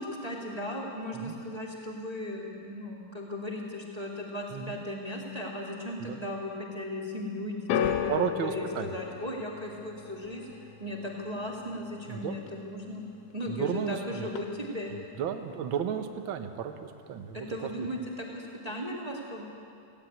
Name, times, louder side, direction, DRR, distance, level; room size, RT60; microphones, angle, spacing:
voice 1, 0.0-8.1 8.4-10.4 10.8-13.0 13.3-14.9 17.3-19.4, left 1 dB, 15° right, -2 dB, 1.8 m, -36 dB
sound 1, 7.7-14.0 14.2-14.9 15.6-15.7, left 9 dB, 75° left, 1.4 m, -36 dB
voice 2, 8.1-8.9 12.1-12.4 13.5-14.3 14.9-17.5, right 8 dB, 75° right, 6 dB, 1.1 m, -33 dB
18.0 x 16.0 x 9.2 m, 2.6 s
omnidirectional pair, 3.8 m